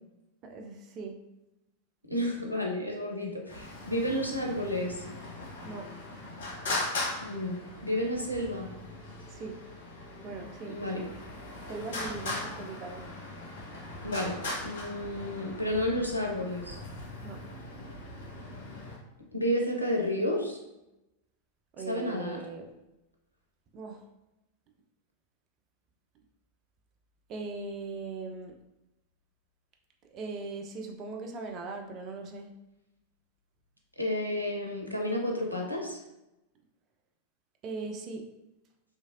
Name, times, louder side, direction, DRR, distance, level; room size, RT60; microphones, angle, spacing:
voice 1, 0.4-1.2 5.6-5.9 9.3-9.6 10.2-11.1 11.7-13.0 17.2-17.4 21.7-22.7 23.7-24.0 27.3-28.5 30.1-32.5 37.6-38.2, right 3 dB, 35° right, 3 dB, 0.4 m, -39 dB
voice 2, 2.1-5.0 7.2-8.7 10.7-11.0 14.0-16.8 19.3-20.6 21.9-22.4 34.0-36.0, left 1 dB, 90° left, 0 dB, 0.5 m, -31 dB
Traffic noise roadway noise, 3.5-19.0, left 2 dB, 60° left, 0.8 m, -39 dB
2.9 x 2.5 x 2.5 m, 0.95 s
figure-of-eight pair, 90°, 0 cm